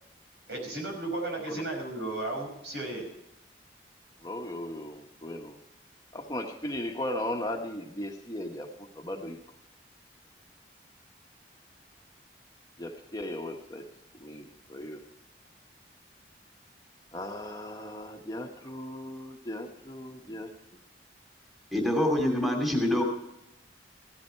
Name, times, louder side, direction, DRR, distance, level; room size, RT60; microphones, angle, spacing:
voice 1, 0.5-3.1, right 2 dB, 70° right, 2 dB, 5.6 m, -34 dB
voice 2, 4.2-5.6 6.1-9.4 12.8-13.9 14.2-15.0 17.1-20.5, left 1 dB, 20° left, 2 dB, 1.3 m, -37 dB
voice 3, 21.7-23.0, left 1 dB, ahead, 0 dB, 2.6 m, -25 dB
16.5 x 13.0 x 4.6 m, 0.83 s
head